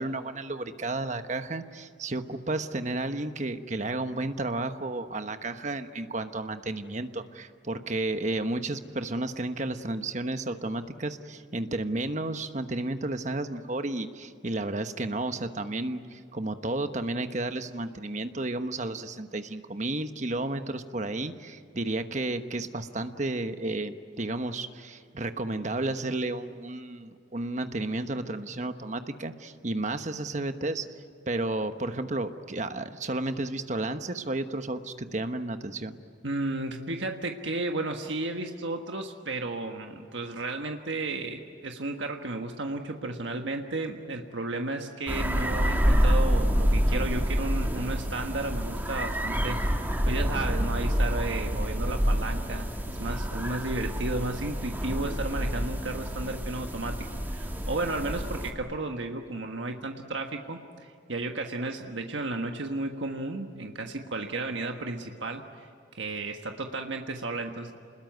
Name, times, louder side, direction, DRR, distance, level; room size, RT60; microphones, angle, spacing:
voice 1, 0.0-30.9 31.3-36.0, right 2 dB, 40° right, 8 dB, 1.1 m, -32 dB
voice 2, 36.2-49.6 50.1-57.0 57.3-65.7 65.9-67.7, right 2 dB, 80° right, 3 dB, 1.5 m, -33 dB
sound 1, 45.1-58.5, equal, 10° right, 1.8 m, -27 dB
28.0 x 21.0 x 9.4 m, 2.3 s
head